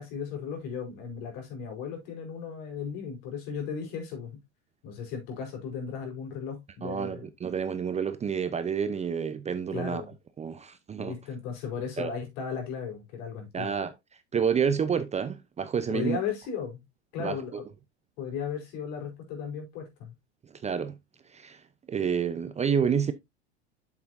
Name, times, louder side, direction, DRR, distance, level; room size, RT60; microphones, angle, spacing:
voice 1, 0.0-4.4 4.8-7.3 9.7-10.1 10.9-13.8 15.9-16.8 17.1-17.6 18.2-20.1, left 7 dB, 60° left, 4.6 m, -36 dB
voice 2, 6.8-10.0 10.4-11.1 12.0-12.1 13.5-13.9 14.3-16.2 17.2-17.6 20.6-21.0 21.3-21.6 21.9-23.1, right 7 dB, 20° right, 0.7 m, -29 dB
8.2 x 7.3 x 2.6 m
hypercardioid pair, 90°, 34 cm